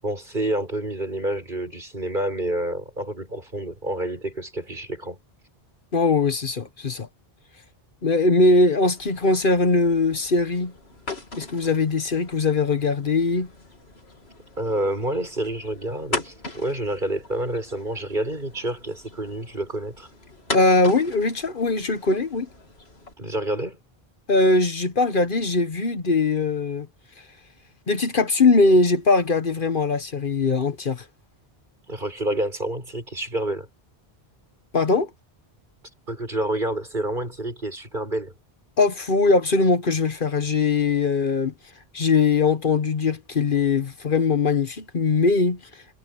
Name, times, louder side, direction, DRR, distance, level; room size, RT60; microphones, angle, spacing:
voice 1, 0.0-5.2 14.6-20.1 23.2-23.8 31.9-33.7 36.1-38.3, right 1 dB, 50° right, 7.2 m, -28 dB
voice 2, 5.9-7.1 8.0-10.7 11.4-13.5 20.5-22.5 24.3-26.9 27.9-31.0 34.7-35.1 38.8-41.5 41.9-45.6, left 3 dB, 55° left, 1.3 m, -21 dB
sound 1, 9.0-23.1, left 3 dB, 90° left, 3.4 m, -39 dB
omnidirectional pair, 1.0 m